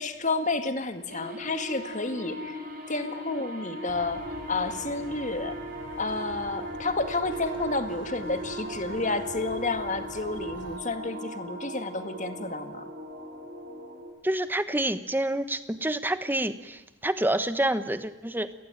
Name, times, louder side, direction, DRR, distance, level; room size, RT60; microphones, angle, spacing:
voice 1, 0.0-2.6 2.9-5.6 6.0-12.8, left 3 dB, 40° left, 8 dB, 2.0 m, -30 dB
sound 1, 1.1-14.1, right 1 dB, 50° right, 5.1 m, -38 dB
sound 2, 3.9-10.8, equal, 85° left, 6.6 m, -48 dB
voice 2, 14.2-18.5, right 1 dB, 10° right, 11 dB, 1.2 m, -28 dB
29.0 x 19.5 x 9.2 m, 1.0 s
head